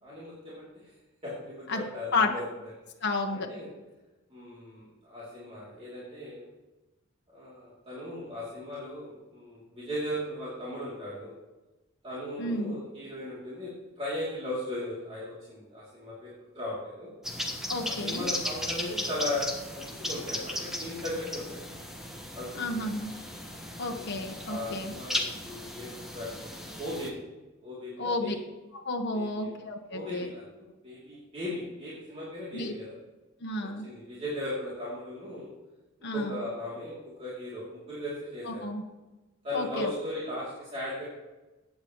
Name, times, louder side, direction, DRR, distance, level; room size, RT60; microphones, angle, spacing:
voice 1, 0.0-0.9 1.2-2.7 3.5-3.7 4.3-6.5 7.3-11.3 12.0-17.1 17.8-21.6 22.3-22.9 23.9-27.1 27.6-28.3 29.1-29.5 29.9-32.9 33.8-35.5 36.1-38.7 39.4-41.0, left 1 dB, 30° right, -9 dB, 3.0 m, -37 dB
voice 2, 3.0-3.5 12.4-12.7 17.7-18.2 22.6-23.1 23.8-24.9 28.0-28.3 28.8-30.3 32.5-32.7 33.4-33.9 36.0-36.4 38.5-38.8 39.5-39.9, left 2 dB, 55° left, 2 dB, 1.1 m, -31 dB
sound 1, 17.2-27.1, left 1 dB, ahead, 1.3 m, -36 dB
15.5 x 8.7 x 3.1 m, 1.1 s
head